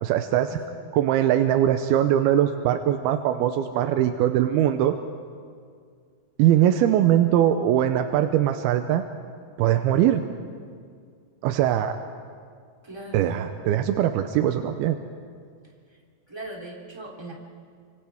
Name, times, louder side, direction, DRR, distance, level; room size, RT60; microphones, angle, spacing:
voice 1, 0.0-0.6 0.9-5.0 6.4-9.0 9.6-10.2 11.4-12.0 13.1-15.0, right 11 dB, 90° right, 7 dB, 2.6 m, -21 dB
voice 2, 12.8-13.4 16.3-17.3, right 1 dB, 10° right, -3 dB, 2.6 m, -39 dB
29.5 x 26.0 x 3.5 m, 2.1 s
omnidirectional pair, 4.4 m